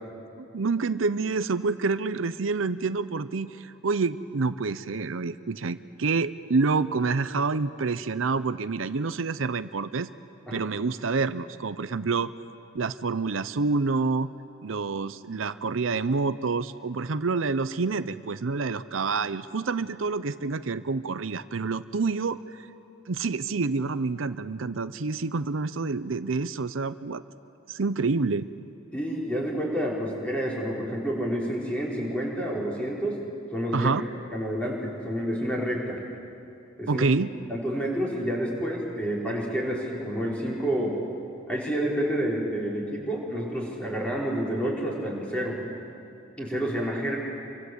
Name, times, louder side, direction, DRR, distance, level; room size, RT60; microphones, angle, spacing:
voice 1, 0.4-10.1 10.5-12.3 12.7-14.3 14.6-22.7 23.1-27.2 27.7-28.5 33.7-34.1 36.9-37.3, right 4 dB, 85° right, 13 dB, 0.7 m, -27 dB
voice 2, 28.9-33.2 33.5-33.9 34.3-36.0 36.8-37.0 37.5-40.9 41.5-45.6 46.4-47.2, equal, 5° left, -4 dB, 4.9 m, -29 dB
27.0 x 24.0 x 8.1 m, 2.7 s
head